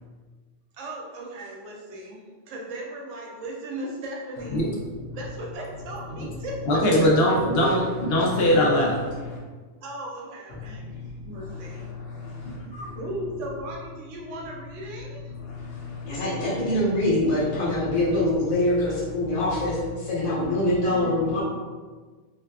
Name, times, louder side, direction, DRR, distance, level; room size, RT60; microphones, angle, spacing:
voice 1, 0.7-4.7 5.1-7.1 7.5-7.9 9.8-11.9 12.9-15.3 20.9-21.3, right 1 dB, 80° right, -2 dB, 0.9 m, -37 dB
voice 2, 4.5-5.2 6.7-9.4 10.5-13.0 15.3-16.7, left 1 dB, 60° left, -3 dB, 0.8 m, -25 dB
voice 3, 16.1-21.4, left 1 dB, 30° left, -9 dB, 0.8 m, -24 dB
2.6 x 2.3 x 2.2 m, 1.4 s
omnidirectional pair, 1.3 m